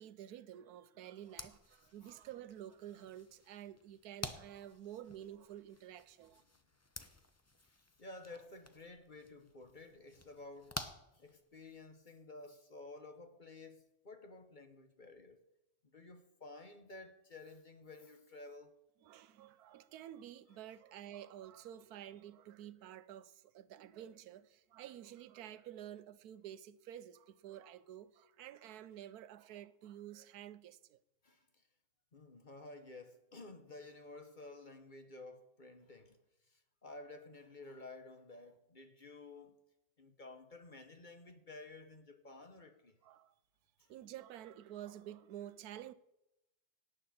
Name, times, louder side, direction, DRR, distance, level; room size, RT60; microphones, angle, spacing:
voice 1, 0.0-6.4 19.0-31.0 43.0-43.3 43.9-45.9, right 11 dB, 85° right, 1.2 m, -50 dB
sound 1, 1.2-11.8, left 2 dB, 20° left, 0.4 m, -51 dB
voice 2, 8.0-10.8 11.1-15.4 15.9-18.7 31.2-31.7 32.1-39.6 40.0-43.0 43.8-43.9, left 2 dB, 35° left, 1.0 m, -53 dB
17.5 x 9.5 x 4.3 m
omnidirectional pair, 1.6 m